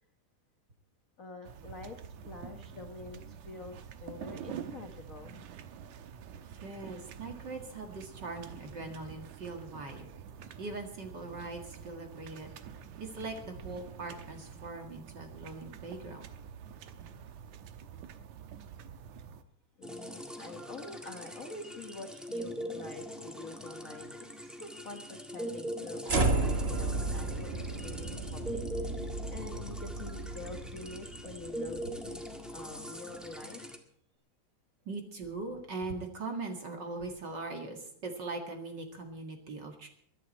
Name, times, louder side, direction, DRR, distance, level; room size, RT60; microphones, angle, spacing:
voice 1, 1.2-5.5 19.8-32.2 32.5-33.6, left 3 dB, 70° left, 3 dB, 0.7 m, -46 dB
sound 1, 1.4-19.4, right 8 dB, 75° right, 2.3 m, -47 dB
voice 2, 6.6-10.1 10.6-12.5 13.0-16.3 34.9-39.9, right 3 dB, 40° right, 3 dB, 2.2 m, -41 dB
sound 2, 19.8-33.8, equal, ahead, 0.6 m, -42 dB
sound 3, 26.1-32.4, right 2 dB, 60° right, 0.6 m, -33 dB
22.5 x 11.0 x 4.2 m, 0.69 s
omnidirectional pair, 3.5 m